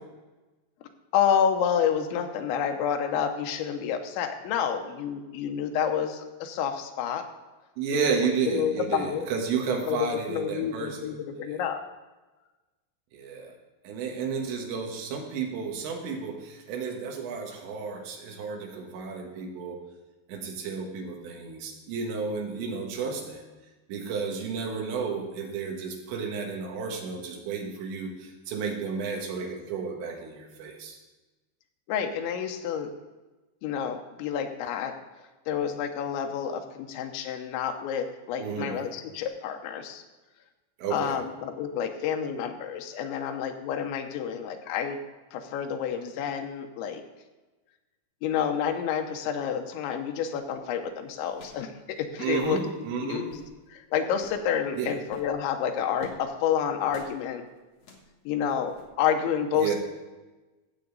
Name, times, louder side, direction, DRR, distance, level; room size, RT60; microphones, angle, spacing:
voice 1, 1.1-7.2 7.9-9.3 9.9-11.8 31.9-32.9 33.6-34.9 35.5-40.0 40.9-45.0 45.3-47.0 48.2-52.6 53.0-53.3 53.7-57.4 58.3-59.8, left 8 dB, 85° left, 6 dB, 3.2 m, -29 dB
voice 2, 7.8-11.1 11.4-11.6 13.1-13.5 13.8-19.8 20.3-23.4 23.9-31.0 38.4-38.8 40.8-41.2 52.2-53.3 54.8-55.0 59.6-59.8, right 5 dB, 75° right, 2 dB, 3.7 m, -32 dB
sound 1, 50.3-50.6 51.3-51.7 52.0-52.1 52.2-52.6 53.1-53.5 54.1-54.5 55.0-56.3 56.9-57.2 57.7-58.1 58.7-58.9, left 4 dB, 65° left, 1.7 m, -50 dB
15.5 x 7.9 x 3.9 m, 1.2 s
omnidirectional pair, 5.2 m